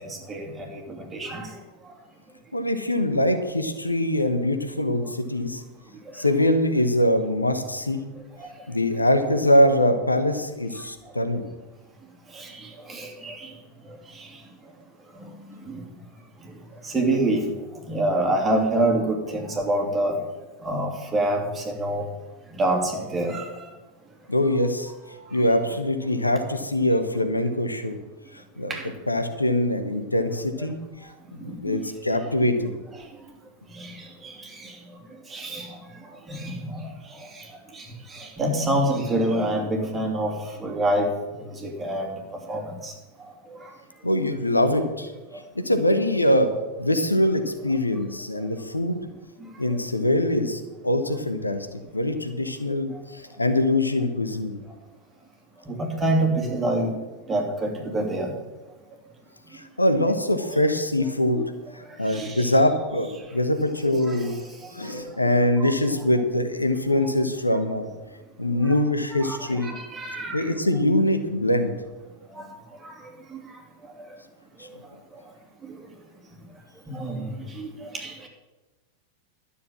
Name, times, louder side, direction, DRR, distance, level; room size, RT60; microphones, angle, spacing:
voice 1, 0.3-0.8 1.1-1.5 8.4-8.5 12.4-12.5 12.9-13.5 16.8-17.5 17.9-20.1 20.6-22.0 22.6-23.4 28.7-28.8 33.8-33.9 34.2-34.3 35.3-35.7 36.3-36.5 36.8-36.9 38.1-40.3 40.6-41.1 41.6-42.1 42.5-42.9 55.7-56.9 57.3-58.3 61.3-61.5 62.1-62.4 64.1-64.2 64.9-65.0 65.6-65.7 69.1-69.4 69.6-70.4 72.4-72.5 72.8-72.9 76.9-77.2 77.6-78.3, right 1 dB, 15° right, 1 dB, 2.7 m, -26 dB
voice 2, 2.5-5.6 6.1-8.1 8.7-11.4 24.3-24.9 25.3-28.0 28.3-28.7 29.1-30.8 31.0-31.1 31.4-32.7 44.0-45.1 45.5-46.5 46.8-49.0 49.6-54.6 59.5-61.4 61.7-64.4 64.7-67.9 68.4-69.7 70.3-71.7 74.6-74.7, left 1 dB, 85° left, 8 dB, 1.1 m, -23 dB
12.5 x 7.1 x 7.6 m, 1.2 s
figure-of-eight pair, 90°, 0 cm